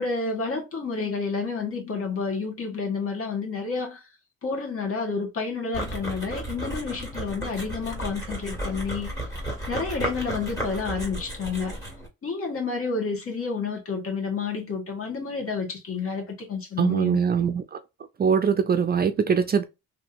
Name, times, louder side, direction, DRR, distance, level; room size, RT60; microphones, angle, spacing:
voice 1, 0.0-4.0 4.4-9.1 9.7-11.7 12.2-17.2, left 4 dB, 50° left, 1.6 m, -30 dB
sound 1, 5.7-12.1, right 1 dB, 10° left, 1.8 m, -33 dB
voice 2, 16.8-17.6 18.2-19.6, right 6 dB, 35° right, 0.4 m, -22 dB
3.3 x 2.8 x 2.5 m
cardioid pair, 90°, 30 cm